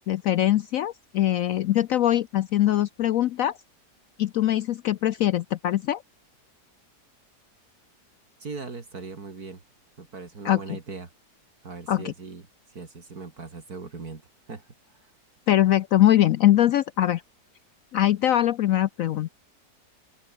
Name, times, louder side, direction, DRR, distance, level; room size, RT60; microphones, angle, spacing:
voice 1, 0.1-3.6 4.2-6.0 10.4-10.8 11.9-12.1 15.5-17.2 17.9-19.3, left 13 dB, 70° left, 0.8 m, -22 dB
voice 2, 8.4-9.6 10.0-11.1 11.6-12.4 12.7-14.2 14.5-15.1, right 4 dB, 60° right, 3.2 m, -39 dB
open air
omnidirectional pair, 1.8 m